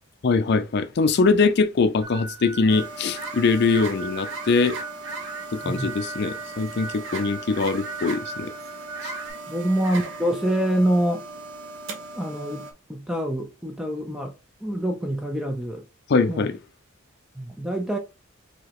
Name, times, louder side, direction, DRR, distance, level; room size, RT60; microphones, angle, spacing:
voice 1, 0.2-4.8 5.5-8.5 9.0-9.1 16.1-16.5, left 4 dB, 50° left, 0.4 m, -22 dB
sound 1, 2.0-9.3, right 3 dB, 90° right, 1.3 m, -39 dB
sound 2, 2.7-12.7, right 3 dB, 60° right, 0.8 m, -37 dB
voice 2, 9.5-11.3 12.1-14.3 14.6-15.8 16.3-16.5 17.4-18.0, right 1 dB, 5° right, 0.4 m, -26 dB
4.9 x 2.8 x 3.0 m
head